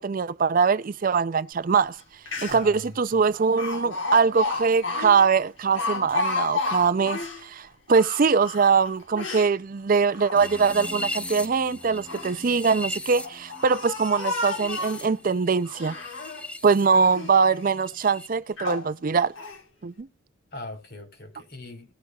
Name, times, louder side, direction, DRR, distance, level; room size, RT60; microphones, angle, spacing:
voice 1, 0.0-2.0 2.4-16.0 16.6-19.3 19.8-20.1, right 5 dB, 40° right, 0.4 m, -22 dB
Speech, 2.0-2.1 2.3-2.8 3.6-7.4 7.9-9.5 10.1-10.9 11.8-12.4 13.1-15.1 15.6-16.5 16.8-17.4 17.9-18.0 18.6-18.9 19.4-19.6, left 3 dB, 70° left, 4.3 m, -32 dB
voice 2, 2.5-3.2 20.5-21.9, left 2 dB, 50° left, 4.1 m, -40 dB
sound 1, 10.3-16.9 17.1-18.3, left 1 dB, 5° left, 0.6 m, -38 dB
18.0 x 6.4 x 2.3 m
head